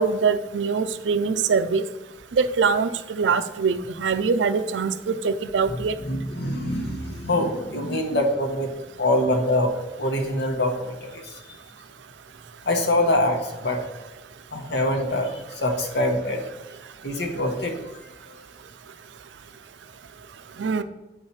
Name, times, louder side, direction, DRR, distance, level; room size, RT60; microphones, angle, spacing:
voice 1, 0.0-1.8 2.3-5.9 20.6-20.8, right 5 dB, 85° right, 12 dB, 0.4 m, -23 dB
voice 2, 6.0-8.7 9.0-9.7 10.0-11.4 12.7-13.9 14.5-16.4 17.0-17.9, left 1 dB, 65° left, 2 dB, 1.1 m, -24 dB
8.4 x 4.8 x 4.3 m, 1.1 s
head